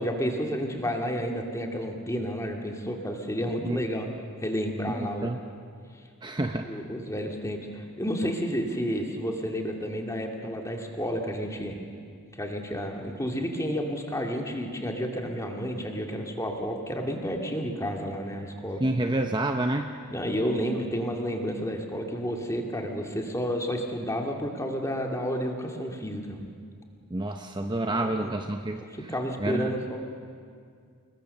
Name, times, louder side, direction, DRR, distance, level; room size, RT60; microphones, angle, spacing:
voice 1, 0.0-4.1 4.4-5.3 6.6-11.8 12.4-18.8 20.1-26.5 27.9-28.3 28.9-30.0, equal, 15° left, 2 dB, 2.2 m, -31 dB
voice 2, 5.0-5.4 6.2-6.7 18.8-19.9 27.1-29.1 29.4-29.7, right 1 dB, 20° right, 5 dB, 0.8 m, -29 dB
28.5 x 21.0 x 6.7 m, 2.2 s
head